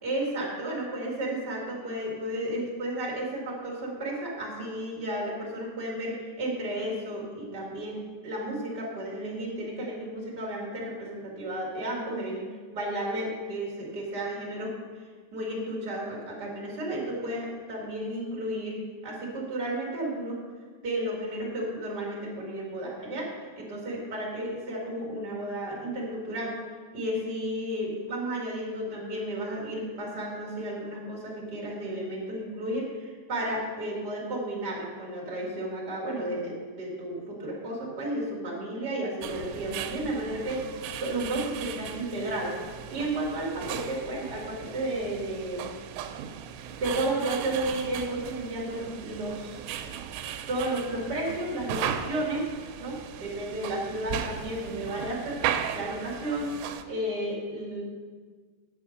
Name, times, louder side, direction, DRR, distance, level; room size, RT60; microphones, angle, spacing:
voice 1, 0.0-12.4 12.7-14.7 15.3-18.8 19.0-20.4 20.8-26.5 26.9-40.6 41.0-42.6 42.9-45.7 46.8-49.6 50.5-52.5 52.8-56.5 56.9-57.8, right 1 dB, 35° right, -3 dB, 1.9 m, -33 dB
sound 1, 39.2-56.8, right 9 dB, 85° right, 2.8 m, -37 dB
9.7 x 7.0 x 6.4 m, 1.5 s
omnidirectional pair, 5.0 m